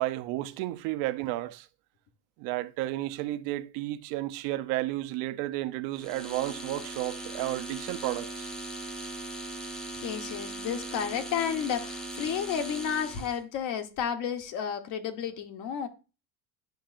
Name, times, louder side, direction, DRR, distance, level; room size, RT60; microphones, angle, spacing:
voice 1, 0.0-1.7 2.4-8.5, right 16 dB, 70° right, 0.6 m, -32 dB
sound 1, 5.9-13.4, right 2 dB, ahead, 0.6 m, -39 dB
voice 2, 10.0-15.9, left 8 dB, 55° left, 1.1 m, -32 dB
10.5 x 5.2 x 2.5 m
cardioid pair, 160°, 36 cm